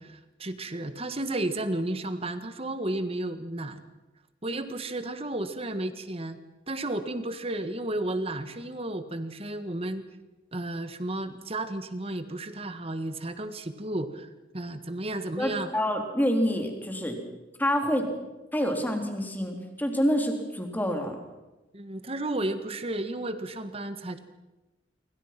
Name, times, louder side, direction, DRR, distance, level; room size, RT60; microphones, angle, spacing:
voice 1, 0.0-3.8 4.4-6.4 6.7-10.0 10.5-15.7 21.7-24.2, right 1 dB, 30° right, 10 dB, 1.7 m, -33 dB
voice 2, 15.4-17.2 17.6-18.1 18.5-21.2, equal, 10° left, 4 dB, 3.6 m, -27 dB
28.0 x 24.5 x 6.0 m, 1.1 s
head